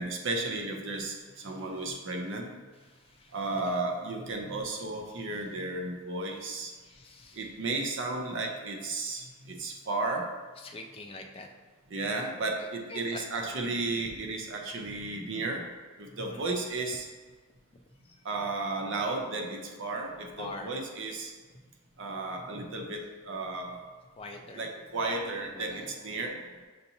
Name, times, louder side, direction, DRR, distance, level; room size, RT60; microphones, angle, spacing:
voice 1, 0.0-2.5 3.3-6.7 7.4-10.3 11.9-15.6 16.0-17.1 18.2-21.3 22.0-23.8 24.5-26.4, right 2 dB, 60° right, 1 dB, 0.6 m, -34 dB
voice 2, 2.9-3.7 6.8-7.5 10.6-11.5 12.6-13.2 16.2-16.5 18.0-18.2 20.4-20.7 24.2-24.6 25.6-25.9, left 2 dB, 25° left, 2 dB, 0.4 m, -45 dB
6.7 x 2.8 x 2.7 m, 1.4 s
head